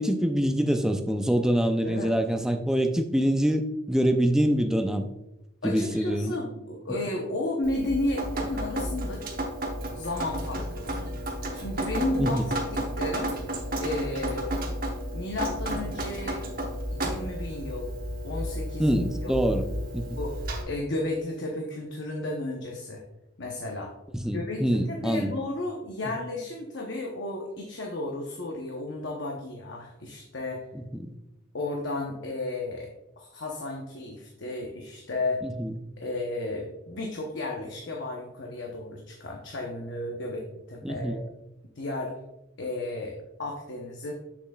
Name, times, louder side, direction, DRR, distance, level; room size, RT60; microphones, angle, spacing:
voice 1, 0.0-5.1 5.6-6.3 12.2-12.5 18.8-19.7 19.9-20.1 24.1-25.3 30.7-31.1 35.4-35.7 40.8-41.2, equal, 5° right, 6 dB, 0.4 m, -25 dB
voice 2, 5.6-9.2 9.9-11.0 11.5-13.3 13.8-14.6 15.1-16.5 16.9-17.9 18.2-18.9 19.2-19.4 20.2-23.0 23.4-23.9 24.3-30.6 31.5-32.9 33.2-35.4 36.0-41.2 41.8-42.1 42.6-44.1, left 2 dB, 60° left, 0 dB, 0.8 m, -33 dB
Drip, 7.6-20.6, right 1 dB, 45° right, 1.0 m, -32 dB
7.6 x 7.0 x 2.3 m, 0.92 s
head